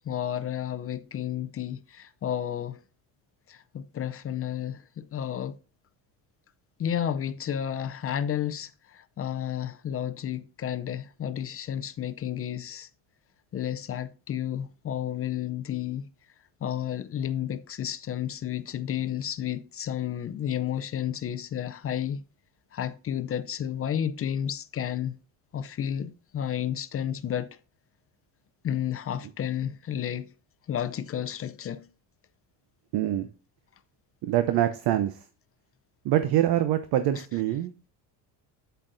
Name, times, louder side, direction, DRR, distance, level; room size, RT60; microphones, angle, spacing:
voice 1, 0.0-2.8 3.5-5.6 6.8-12.9 13.5-16.1 16.6-22.2 22.7-25.2 25.5-27.6 28.6-30.3 30.7-31.9 37.2-37.3, left 10 dB, 30° left, 0.5 m, -31 dB
voice 2, 32.9-33.3 34.2-35.1 36.0-37.9, right 12 dB, 55° right, 0.8 m, -25 dB
8.5 x 7.9 x 2.6 m
cardioid pair, 105°, 46 cm